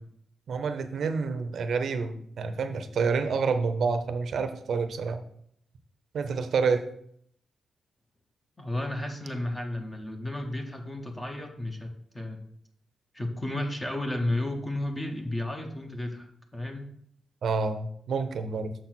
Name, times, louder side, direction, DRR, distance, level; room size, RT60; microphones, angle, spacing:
voice 1, 0.5-5.2 6.1-6.8 17.4-18.7, right 5 dB, 55° right, 8 dB, 0.7 m, -28 dB
voice 2, 8.6-12.4 13.1-16.3 16.5-16.9, left 1 dB, 10° left, 4 dB, 0.9 m, -33 dB
6.5 x 4.2 x 6.1 m, 0.66 s
wide cardioid pair, 175°, 0 cm